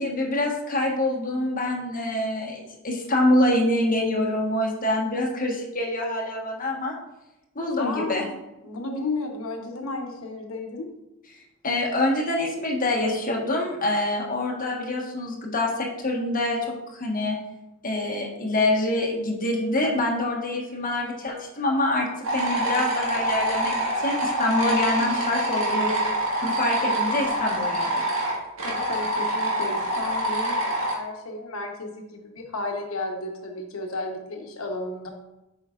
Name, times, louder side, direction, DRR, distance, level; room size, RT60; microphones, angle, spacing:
voice 1, 0.0-6.9 7.5-8.2 11.6-16.6 16.9-17.4 17.8-22.1 22.3-25.9 26.4-28.0, left 1 dB, 40° left, -1 dB, 1.3 m, -25 dB
voice 2, 7.8-8.3 8.6-10.9 28.6-35.1, left 2 dB, 90° left, 2 dB, 1.1 m, -33 dB
sound 1, 22.2-30.9, right 1 dB, 85° right, 1.6 m, -26 dB
8.1 x 5.6 x 2.5 m, 0.94 s
head